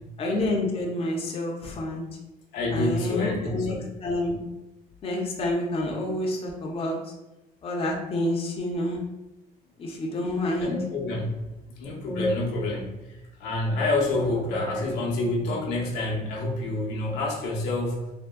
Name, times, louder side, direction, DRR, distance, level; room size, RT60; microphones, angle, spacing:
voice 1, 0.2-2.0 2.7-4.4 5.0-7.0 7.6-9.0 9.8-10.8, left 1 dB, 35° left, -1 dB, 0.6 m, -28 dB
voice 2, 2.5-3.9 10.6-11.5 11.8-18.1, left 2 dB, 85° left, -3 dB, 0.7 m, -28 dB
3.5 x 2.1 x 2.2 m, 0.99 s
cardioid pair, 110°, 17 cm